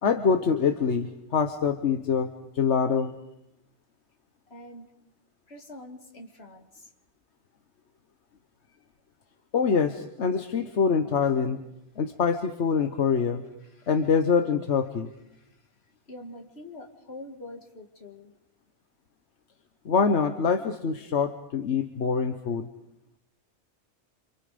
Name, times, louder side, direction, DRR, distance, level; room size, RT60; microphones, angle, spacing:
voice 1, 0.0-3.1 9.5-11.6 12.0-13.4 13.9-15.1 19.8-22.7, left 6 dB, 85° left, 7 dB, 1.4 m, -25 dB
voice 2, 4.5-4.9 5.5-6.9 13.6-13.9 15.3-18.3, left 1 dB, 65° left, 2 dB, 2.7 m, -45 dB
28.5 x 27.5 x 5.1 m, 0.82 s
omnidirectional pair, 1.1 m